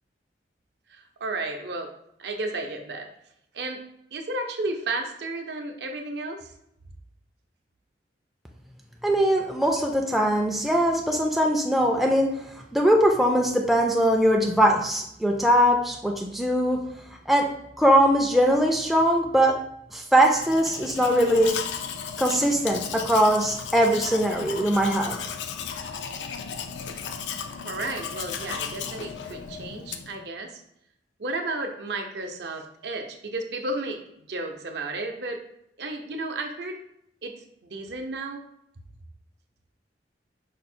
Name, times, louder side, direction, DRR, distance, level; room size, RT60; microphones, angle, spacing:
voice 1, 0.9-1.9 2.2-3.1 3.5-3.8 4.1-6.5 27.6-30.6 31.2-35.4 35.8-36.8 37.2-37.4 37.7-38.4, right 2 dB, 70° right, 4 dB, 0.6 m, -33 dB
voice 2, 9.0-12.3 12.7-16.8 17.3-17.5 17.8-19.5 19.9-21.5 22.2-25.3, equal, ahead, 0 dB, 0.3 m, -21 dB
Domestic sounds home sounds, 20.1-30.2, left 6 dB, 80° left, 0.4 m, -35 dB
5.1 x 2.0 x 4.3 m, 0.77 s
head